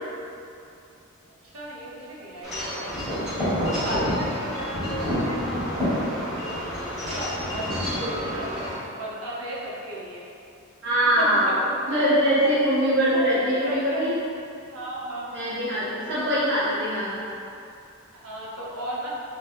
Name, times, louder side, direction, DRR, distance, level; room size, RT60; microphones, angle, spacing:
voice 1, 1.4-3.1 3.6-6.6 7.1-10.3 11.2-12.1 12.8-12.9 13.1-14.2 14.7-16.3 18.1-19.1, right 1 dB, 85° right, -5 dB, 0.8 m, -35 dB
Wind chime / Wind, 2.4-8.7, equal, 5° right, 1.5 m, -28 dB
voice 2, 10.8-11.6 11.9-14.1 15.3-17.2, equal, 60° right, -11 dB, 0.9 m, -22 dB
3.2 x 3.1 x 3.0 m, 2.5 s
head